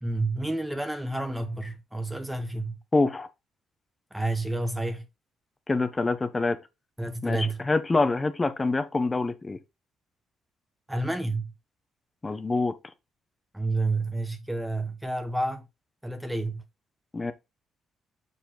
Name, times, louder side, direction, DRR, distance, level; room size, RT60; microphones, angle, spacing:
voice 1, 0.0-2.7 4.1-5.1 7.0-7.6 10.9-11.5 13.5-15.7 16.0-16.6, right 2 dB, 5° right, 1.1 m, -29 dB
voice 2, 2.9-3.3 5.7-6.6 7.2-9.6 12.2-12.7 17.1-17.3, left 3 dB, 25° left, 1.1 m, -25 dB
6.9 x 4.7 x 4.0 m
cardioid pair, 90°, 0 cm